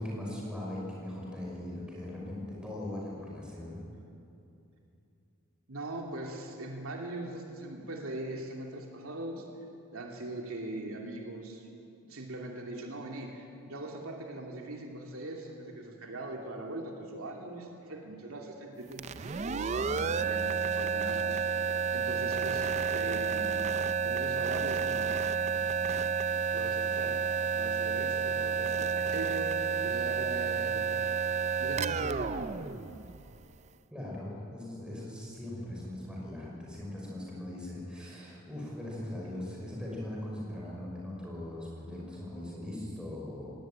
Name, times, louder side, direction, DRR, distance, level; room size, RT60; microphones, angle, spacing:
voice 1, 0.0-3.8 33.9-43.5, left 1 dB, 5° right, -4 dB, 5.5 m, -40 dB
voice 2, 5.7-9.5 9.9-11.7 12.1-23.7 24.0-26.1 26.5-27.2 27.5-31.2 31.6-32.6, right 2 dB, 75° right, 0 dB, 2.7 m, -41 dB
sound 1, 18.9-33.5, right 6 dB, 30° right, 0.4 m, -30 dB
19.0 x 18.5 x 9.0 m, 2.7 s
head